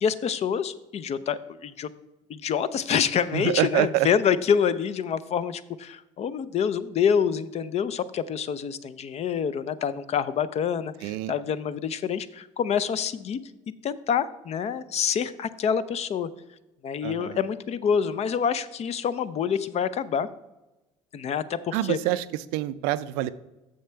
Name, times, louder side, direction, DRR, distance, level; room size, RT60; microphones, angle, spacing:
voice 1, 0.0-1.9 2.3-13.4 13.8-16.3 16.8-20.3 21.1-22.0, left 7 dB, 45° left, 16 dB, 0.5 m, -27 dB
voice 2, 3.3-4.1 11.0-11.3 17.0-17.4 21.7-22.2 22.5-23.3, right 15 dB, 75° right, 15 dB, 0.4 m, -26 dB
6.6 x 6.5 x 4.5 m, 1.0 s
hypercardioid pair, 65°, 15 cm